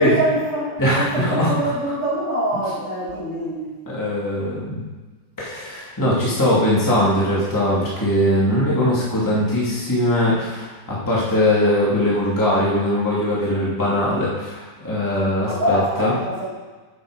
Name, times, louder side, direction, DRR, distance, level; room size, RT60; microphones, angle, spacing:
voice 1, 0.0-3.7 15.4-16.5, right 1 dB, 70° left, -9 dB, 0.6 m, -24 dB
voice 2, 0.8-1.5 3.8-4.8 5.4-16.1, left 1 dB, 30° left, -7 dB, 0.3 m, -20 dB
8.2 x 8.1 x 5.1 m, 1.3 s
omnidirectional pair, 5.3 m